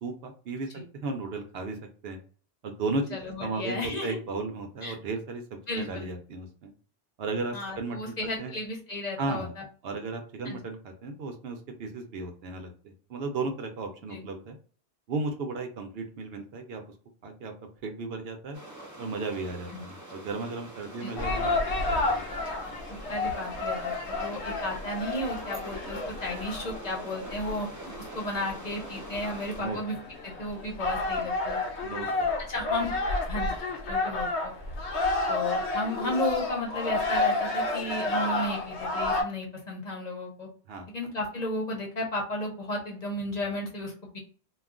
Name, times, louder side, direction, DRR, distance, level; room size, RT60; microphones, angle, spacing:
voice 1, 0.0-2.2 2.6-3.7 4.0-6.7 7.2-8.5 9.2-9.5 9.8-14.5 15.1-16.8 17.2-17.5 17.8-18.6 19.0-22.3 22.7-22.8 29.2-29.8 31.8-32.3 40.7-40.9, right 3 dB, 70° right, 4 dB, 0.8 m, -35 dB
voice 2, 3.1-4.2 4.8-5.0 5.7-6.1 7.5-9.6 10.4-10.6 14.1-14.2 19.7-19.8 21.0-21.1 22.9-23.9 24.2-27.7 28.1-30.0 30.2-31.6 32.5-32.9 33.3-33.5 33.9-34.5 35.3-40.5 40.9-44.2, left 1 dB, 45° left, -1 dB, 0.8 m, -33 dB
sound 1, 18.5-29.6, right 1 dB, 20° right, 0.6 m, -45 dB
sound 2, 21.2-39.2, left 2 dB, 85° left, 1.0 m, -31 dB
2.3 x 2.3 x 3.6 m, 0.41 s
omnidirectional pair, 1.1 m